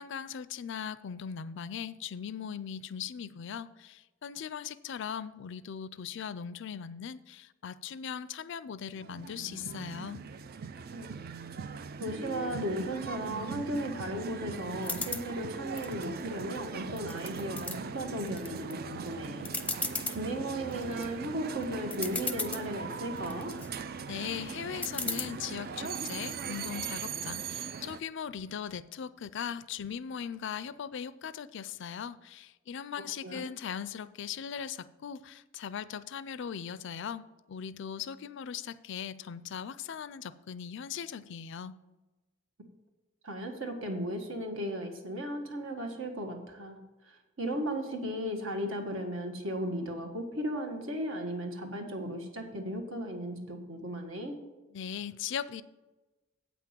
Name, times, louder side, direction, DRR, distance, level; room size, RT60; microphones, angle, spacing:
voice 1, 0.0-10.2 24.1-41.7 54.7-55.6, left 8 dB, 65° left, 15 dB, 0.4 m, -39 dB
sound 1, 8.9-28.0, right 5 dB, 50° right, 0.4 m, -40 dB
voice 2, 12.0-19.5 20.1-23.5 33.2-33.5 43.2-46.8 47.0-54.4, equal, 70° right, 3 dB, 1.6 m, -36 dB
sound 2, 14.8-15.3 15.8-16.6 17.0-17.8 18.3-18.7 19.1-19.2 19.5-20.2 20.7-21.1 21.6-21.7 21.9-22.7 23.2-23.7 24.8-25.2, left 3 dB, 5° left, 0.6 m, -35 dB
8.3 x 5.9 x 7.4 m, 1.2 s
head